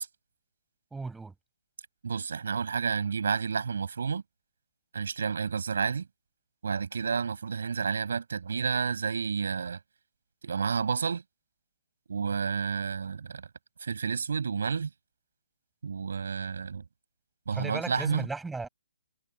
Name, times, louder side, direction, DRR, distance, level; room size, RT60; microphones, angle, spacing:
voice 1, 0.9-1.3 17.5-18.7, right 3 dB, 5° right, 7.3 m, -36 dB
voice 2, 2.0-4.2 4.9-6.1 6.6-9.8 10.4-11.2 12.1-13.5 13.8-14.9 15.8-16.8 17.5-18.3, right 6 dB, 60° right, 7.4 m, -30 dB
figure-of-eight pair, 135°, 0 cm